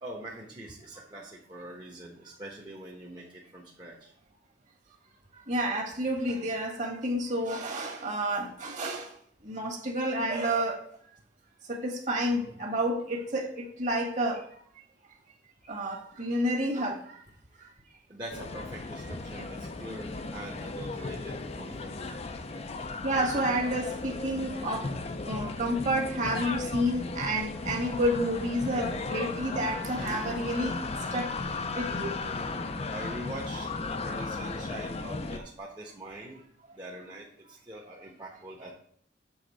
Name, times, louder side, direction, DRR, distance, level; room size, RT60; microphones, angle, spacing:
voice 1, 0.0-4.1 16.5-16.6 17.3-17.4 18.1-21.9 23.0-23.1 26.0-26.6 32.9-36.4 36.7-38.7, right 1 dB, 25° right, -2 dB, 1.0 m, -44 dB
voice 2, 5.3-9.2 9.4-10.8 11.7-14.6 15.6-17.2 17.6-17.7 19.4-19.5 21.2-21.3 21.6-21.7 23.0-24.9 25.2-31.3 31.7-32.1, right 1 dB, 45° right, 2 dB, 1.6 m, -30 dB
sound 1, 18.3-35.4, left 3 dB, 35° left, 0.5 m, -36 dB
7.2 x 3.8 x 6.1 m, 0.63 s
head